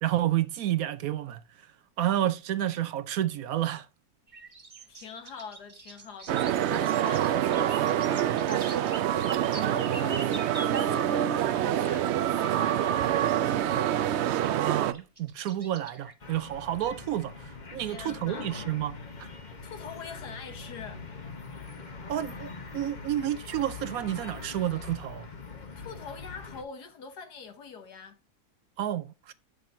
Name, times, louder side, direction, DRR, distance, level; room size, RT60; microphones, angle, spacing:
voice 1, 0.0-1.4 2.0-3.9 14.6-19.3 22.1-22.5 22.7-25.3 28.8-29.3, right 12 dB, 70° right, 1.0 m, -30 dB
sound 1, 4.3-10.9 12.6-12.7 14.4-16.1, right 3 dB, 25° right, 1.0 m, -43 dB
voice 2, 4.9-13.9 17.8-18.5 19.6-21.0 25.8-28.2, left 5 dB, 80° left, 1.9 m, -44 dB
sound 2, 6.3-14.9, right 11 dB, 85° right, 0.6 m, -26 dB
sound 3, 16.2-26.6, left 4 dB, 35° left, 1.0 m, -43 dB
9.0 x 6.4 x 2.7 m
omnidirectional pair, 1.7 m